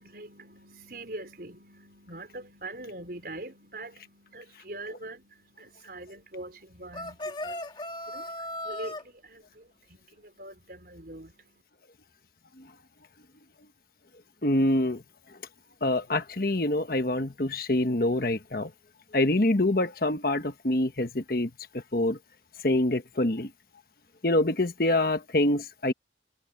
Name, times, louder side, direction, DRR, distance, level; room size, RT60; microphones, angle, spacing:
voice 1, 0.0-11.6, right 2 dB, 55° right, 5.1 m, -43 dB
sound 1, 6.9-9.0, left 1 dB, 25° left, 2.2 m, -36 dB
voice 2, 14.4-15.0 15.8-18.7 19.1-21.5 21.9-22.2 22.6-23.5 24.2-25.9, left 1 dB, 55° left, 1.3 m, -25 dB
head